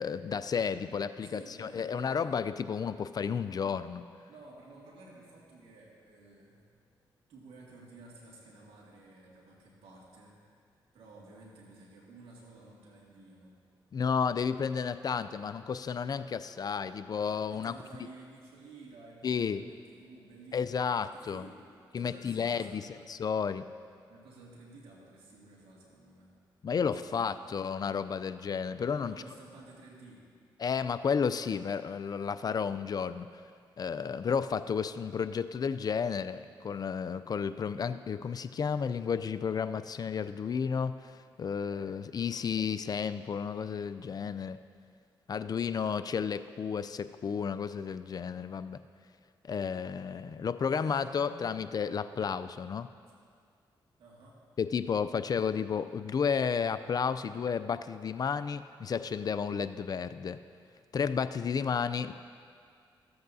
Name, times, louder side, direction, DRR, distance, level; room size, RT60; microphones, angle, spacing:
voice 1, 0.0-4.1 13.9-17.7 19.2-19.6 20.5-21.4 21.9-22.8 23.1-23.7 26.6-29.2 30.6-33.4 33.8-44.6 45.3-48.8 49.4-52.9 54.6-60.4 60.9-62.1, left 6 dB, 45° left, 12 dB, 0.4 m, -32 dB
voice 2, 1.2-2.4 4.3-6.6 7.3-10.4 10.9-13.6 17.5-23.2 24.1-26.3 26.8-27.6 29.0-30.3 41.6-42.5 50.7-51.5 54.0-54.4, right 2 dB, 85° right, -3 dB, 2.0 m, -53 dB
14.5 x 7.9 x 2.7 m, 2.2 s
supercardioid pair, 55°, 9 cm